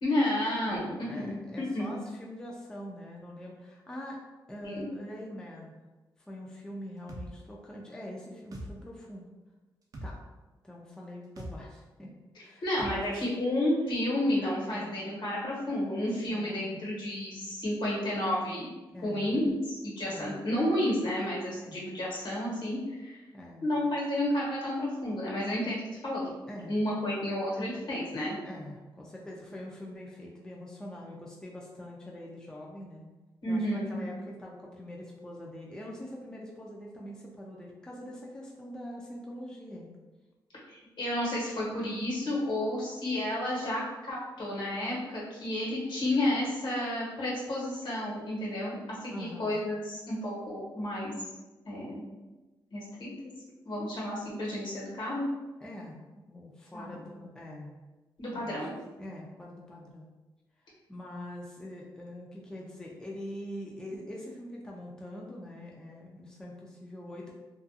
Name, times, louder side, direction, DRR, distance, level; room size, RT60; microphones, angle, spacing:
voice 1, 0.0-1.9 4.6-4.9 12.6-18.7 19.0-22.8 23.1-23.2 23.6-26.3 26.7-28.4 33.4-34.0 40.7-51.1 51.6-52.0 52.7-53.1 53.6-55.3 56.7-56.9 58.2-58.7, left 1 dB, 65° left, -5 dB, 1.1 m, -31 dB
voice 2, 0.7-4.2 4.5-5.8 6.2-9.3 10.0-10.2 10.6-13.2 14.7-15.0 16.3-16.8 18.9-19.3 20.0-20.4 21.5-21.8 23.3-23.7 26.5-26.8 28.4-33.1 33.5-39.9 49.1-49.6 54.5-54.6 55.6-56.0 56.3-57.8 58.3-58.7 59.0-60.1 60.7-67.3, left 1 dB, 10° left, -3 dB, 0.4 m, -44 dB
sound 1, 7.1-7.3 8.5-8.7 9.9-10.1 11.4-11.6 12.8-13.0, right 1 dB, 45° right, 0.5 m, -40 dB
2.4 x 2.2 x 2.6 m, 1.2 s
cardioid pair, 85°, 8 cm